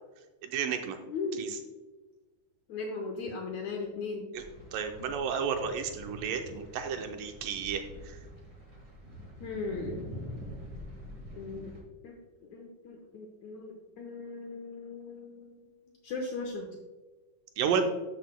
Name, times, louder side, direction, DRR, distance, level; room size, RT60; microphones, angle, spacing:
voice 1, 0.4-1.0 1.4-1.6 4.3-4.4 4.7-8.2 17.6-17.8, right 7 dB, 80° right, 6 dB, 2.1 m, -32 dB
voice 2, 1.1-1.5 2.7-4.3 9.4-10.0 11.3-11.7 12.0-12.1 12.4-15.6 16.0-16.7, left 3 dB, 75° left, 2 dB, 1.7 m, -38 dB
sound 1, 4.3-11.8, equal, 40° right, 1.1 m, -45 dB
12.0 x 6.4 x 2.2 m, 1.2 s
omnidirectional pair, 4.1 m